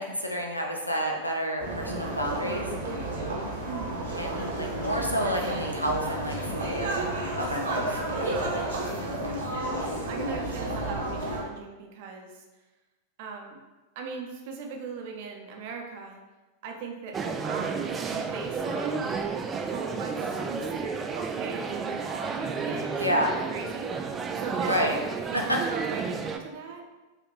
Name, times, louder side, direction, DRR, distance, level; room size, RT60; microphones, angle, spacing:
voice 1, 0.0-2.7 4.1-7.9 23.0-23.3 24.7-25.0, equal, 90° left, 0 dB, 0.6 m, -30 dB
sound 1, 1.6-11.4, right 1 dB, 70° right, 1.0 m, -31 dB
voice 2, 3.6-4.0 7.7-9.4 10.1-12.4 13.2-13.6 14.0-16.2 16.6-17.2 17.4-19.1 19.7-23.9 24.4-24.9 25.3-26.8, right 5 dB, 50° right, 2 dB, 0.7 m, -39 dB
sound 2, 17.1-26.4, right 5 dB, 20° right, 0.3 m, -32 dB
4.7 x 2.5 x 3.3 m, 1.2 s
figure-of-eight pair, 90°, 0 cm